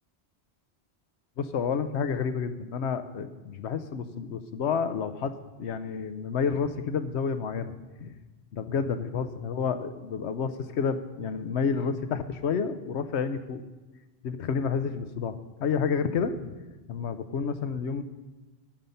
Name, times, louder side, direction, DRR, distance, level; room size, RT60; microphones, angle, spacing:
voice 1, 1.4-7.7 8.0-8.2 8.5-13.6 14.2-16.5 16.9-18.0, left 6 dB, 85° left, 10 dB, 1.0 m, -30 dB
14.5 x 5.4 x 5.7 m, 1.2 s
omnidirectional pair, 1.1 m